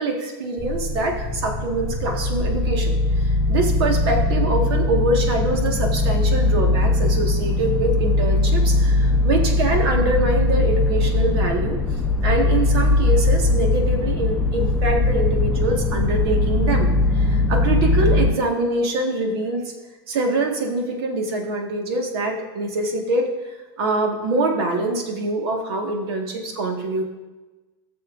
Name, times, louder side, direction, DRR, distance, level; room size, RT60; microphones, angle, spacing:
voice 1, 0.0-11.8 12.2-19.7 20.1-27.0, right 2 dB, 70° right, 2 dB, 1.7 m, -24 dB
sound 1, 0.6-18.3, left 2 dB, 10° left, 0.7 m, -20 dB
15.5 x 6.9 x 2.6 m, 1.2 s
supercardioid pair, 150°, 13 cm